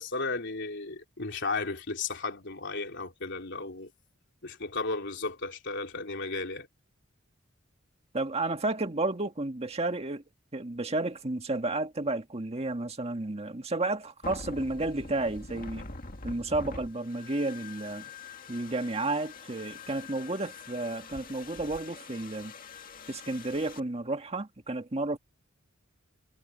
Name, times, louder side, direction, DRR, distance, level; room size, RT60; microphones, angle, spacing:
voice 1, 0.0-3.9 4.4-6.7, left 3 dB, 60° left, 3.5 m, -34 dB
voice 2, 8.1-10.2 10.5-15.9 16.2-18.1 18.5-22.5 23.1-25.2, right 2 dB, 30° right, 1.8 m, -32 dB
sound 1, 14.2-23.8, left 3 dB, 45° left, 2.1 m, -45 dB
head